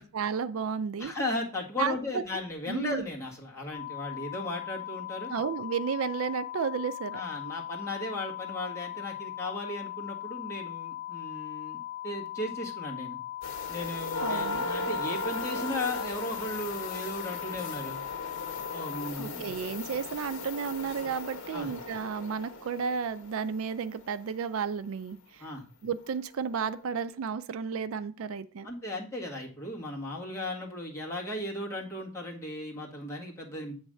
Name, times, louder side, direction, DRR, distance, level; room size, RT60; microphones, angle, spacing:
voice 1, 0.0-1.1 1.8-2.4 2.7-3.1 5.3-7.2 14.2-14.7 19.2-25.5 25.8-28.7, right 6 dB, 65° right, 13 dB, 0.4 m, -33 dB
voice 2, 1.0-5.3 7.1-11.8 12.0-13.2 13.7-18.0 18.7-19.5 21.5-21.7 25.4-25.6 28.6-33.7, left 1 dB, 15° left, -4 dB, 1.7 m, -36 dB
sound 1, 3.7-19.1, left 14 dB, ahead, 0.9 m, -39 dB
sound 2, 13.4-24.0 26.1-26.2 26.7-26.8, left 3 dB, 60° left, 1.2 m, -37 dB
8.8 x 3.1 x 6.4 m, 0.40 s
head